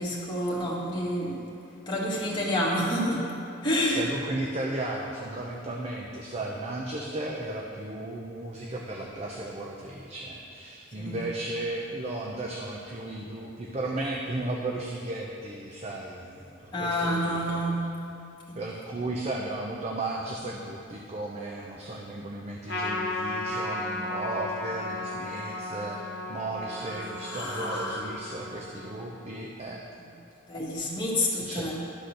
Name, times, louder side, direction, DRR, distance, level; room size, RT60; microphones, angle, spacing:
voice 1, 0.0-1.4 1.9-3.3 3.6-4.0 11.0-11.2 16.7-17.8 27.2-28.1 30.0-30.1 30.5-31.7, equal, 25° left, -5 dB, 1.7 m, -28 dB
voice 2, 4.0-17.6 18.6-26.0 26.3-29.8 31.3-31.7, right 2 dB, 35° right, -1 dB, 0.6 m, -35 dB
Trumpet, 22.7-29.4, left 1 dB, 60° left, 1.1 m, -35 dB
11.5 x 4.2 x 6.5 m, 2.5 s
head